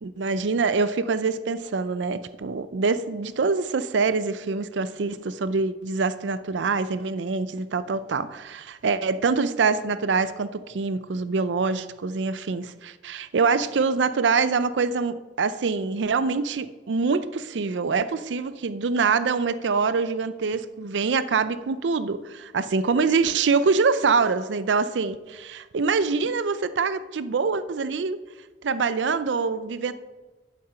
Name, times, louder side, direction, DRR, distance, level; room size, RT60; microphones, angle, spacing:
voice 1, 0.0-28.2 28.6-29.9, right 4 dB, 90° right, 0.5 m, -25 dB
8.6 x 7.7 x 5.6 m
head